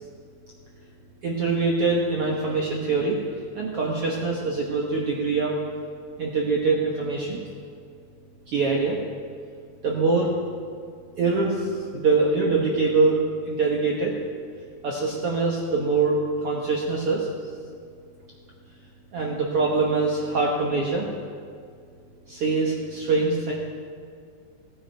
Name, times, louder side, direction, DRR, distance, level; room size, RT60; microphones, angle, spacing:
voice 1, 1.2-3.2 3.5-5.6 6.2-7.4 8.5-9.0 9.8-10.3 11.2-14.1 14.8-17.3 19.1-21.1 22.3-23.5, right 3 dB, 85° right, -2 dB, 1.3 m, -24 dB
18.0 x 11.0 x 4.5 m, 2.2 s
omnidirectional pair, 4.4 m